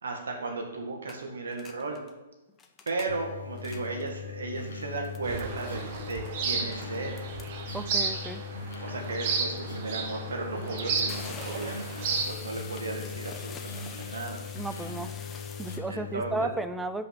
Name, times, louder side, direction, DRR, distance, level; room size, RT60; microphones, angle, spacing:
voice 1, 0.0-2.0 2.9-5.8 6.1-7.2 8.8-14.4 15.9-16.5, right 3 dB, 85° right, 2 dB, 1.8 m, -35 dB
sound 1, 1.1-1.2 1.5-2.1 2.5-3.2 3.5-4.2 4.7-15.8, left 5 dB, 20° left, 0.8 m, -48 dB
sound 2, 3.1-16.5, left 6 dB, 80° left, 0.7 m, -40 dB
sound 3, 5.2-12.3, right 5 dB, 45° right, 1.2 m, -33 dB
voice 2, 7.7-8.4 14.5-15.1 15.6-17.1, right 2 dB, 5° right, 10 dB, 0.4 m, -33 dB
5.7 x 5.2 x 6.7 m, 1.1 s
hypercardioid pair, 135°, 0 cm